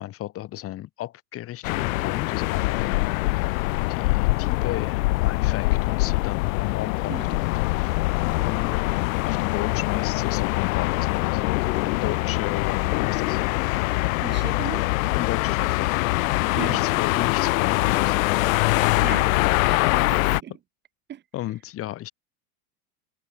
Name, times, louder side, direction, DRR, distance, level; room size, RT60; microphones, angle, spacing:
voice 1, 0.0-3.5 3.9-9.0 9.3-13.4 15.1-18.2 18.8-19.1 19.4-19.6 21.3-22.1, left 14 dB, 30° left, 4.4 m, -34 dB
sound 1, 1.6-20.4, left 22 dB, 60° left, 0.5 m, -23 dB
voice 2, 14.2-14.9 16.6-16.8 19.0-19.3 19.6-19.8 20.1-20.5 21.1-21.2, right 10 dB, 20° right, 3.7 m, -35 dB
supercardioid pair, 160°, 47 cm